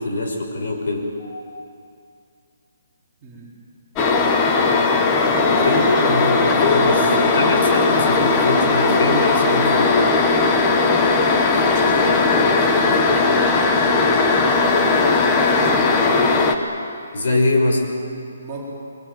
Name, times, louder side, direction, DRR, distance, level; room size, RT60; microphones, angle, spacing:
voice 1, 0.0-1.2 5.7-10.0 17.1-17.8, left 2 dB, 50° left, 2 dB, 5.5 m, -23 dB
sound 1, 4.0-16.5, left 3 dB, 15° left, 1.3 m, -17 dB
voice 2, 5.2-7.4 10.7-13.5 13.9-16.4 17.3-17.6 18.4-18.6, right 2 dB, 15° right, -6 dB, 4.5 m, -32 dB
24.5 x 24.0 x 9.0 m, 2.3 s
hypercardioid pair, 175°, 0 cm